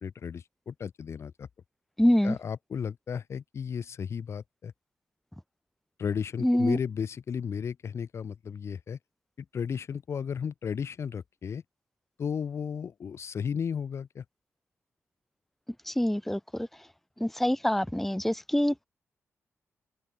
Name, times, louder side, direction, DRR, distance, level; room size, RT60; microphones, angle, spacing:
voice 1, 0.0-1.5 2.2-4.7 6.0-9.0 9.4-11.6 12.2-14.2, left 7 dB, 60° left, 2.1 m, -34 dB
voice 2, 2.0-2.4 6.4-6.8 15.9-16.7 17.2-18.9, left 1 dB, 5° left, 1.5 m, -25 dB
open air
cardioid pair, 90°, 5 cm